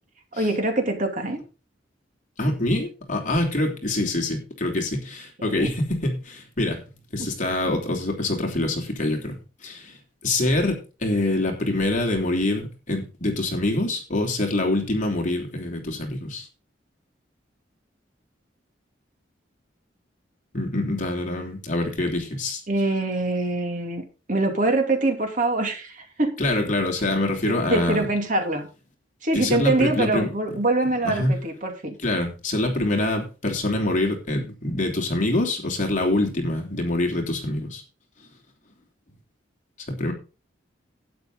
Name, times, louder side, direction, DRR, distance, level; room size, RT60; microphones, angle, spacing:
voice 1, 0.3-1.4 5.4-5.7 7.2-7.3 22.7-26.4 27.4-28.6 29.2-32.0, right 2 dB, 45° right, 4 dB, 2.7 m, -24 dB
voice 2, 2.4-6.8 7.1-10.0 10.2-16.5 20.5-22.6 26.4-28.1 29.3-30.3 31.0-31.3 32.0-37.8 39.9-40.1, left 1 dB, 40° left, 1 dB, 3.2 m, -25 dB
12.0 x 9.5 x 3.9 m, 0.32 s
head